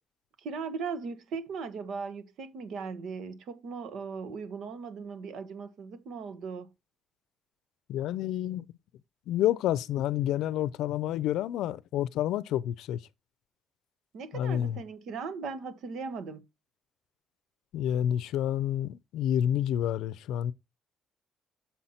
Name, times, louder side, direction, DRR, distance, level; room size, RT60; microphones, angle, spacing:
voice 1, 0.4-6.7 14.1-16.4, right 5 dB, 75° right, 1.4 m, -38 dB
voice 2, 7.9-8.6 9.3-13.0 14.3-14.8 17.7-20.5, left 11 dB, 85° left, 0.5 m, -29 dB
7.2 x 5.6 x 4.3 m
cardioid pair, 90°, 0 cm